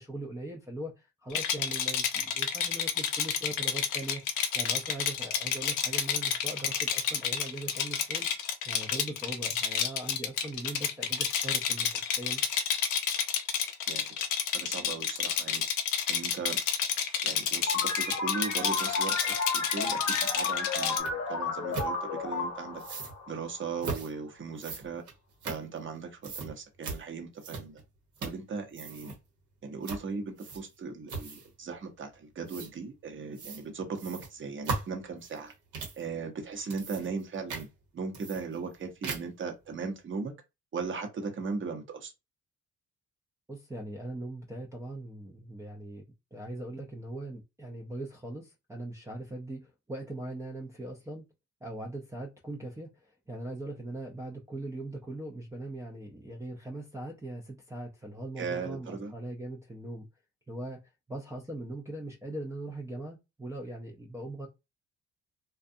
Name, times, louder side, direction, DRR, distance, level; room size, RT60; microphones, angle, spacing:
voice 1, 0.0-8.3 8.7-12.4 43.5-46.0 46.3-51.3 51.6-60.1 60.5-60.8 61.1-64.5, right 1 dB, 10° right, 0.5 m, -40 dB
Rattle, 1.3-21.0, left 8 dB, 85° left, 0.5 m, -30 dB
voice 2, 13.9-14.2 14.5-15.6 16.1-16.6 17.2-22.8 23.3-25.0 25.4-27.8 28.2-29.1 29.6-35.5 36.0-37.7 37.9-40.3 40.7-42.1 58.4-59.1, right 5 dB, 40° right, 0.8 m, -38 dB
sound 1, 17.7-23.9, left 4 dB, 60° left, 0.8 m, -33 dB
sound 2, 21.0-21.1 21.7-21.9 22.8-23.1 23.8-24.1 24.6-26.0 26.2-26.5 26.8-27.0 27.4-27.8 28.1-28.5 28.7-29.2 29.8-30.0 30.4-30.8 31.1-31.5 32.5-32.7 33.3-33.6 34.0-36.0 36.5-37.2 37.5-37.7 38.1-38.7 39.0-39.4, right 4 dB, 75° right, 1.0 m, -38 dB
2.5 x 2.3 x 2.6 m
cardioid pair, 90°, 30 cm